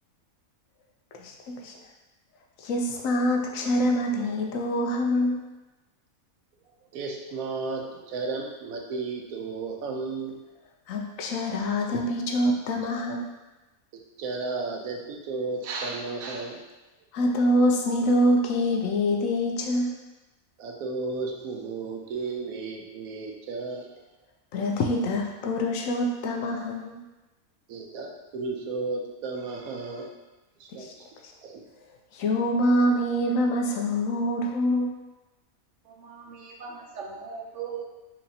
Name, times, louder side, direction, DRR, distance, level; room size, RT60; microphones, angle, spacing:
voice 1, 1.1-1.7 2.6-5.5 10.9-13.3 17.1-19.9 24.5-27.0 30.8-30.9 31.2-31.3 32.1-34.9, left 1 dB, 75° left, 1 dB, 0.9 m, -25 dB
voice 2, 6.9-10.3 14.2-16.6 20.6-23.9 27.7-30.1 30.6-30.9 31.4-31.6, right 3 dB, 85° right, 1 dB, 1.0 m, -33 dB
voice 3, 35.9-37.8, right 6 dB, 65° right, -1 dB, 0.9 m, -39 dB
4.5 x 2.9 x 2.7 m, 1.1 s
omnidirectional pair, 1.5 m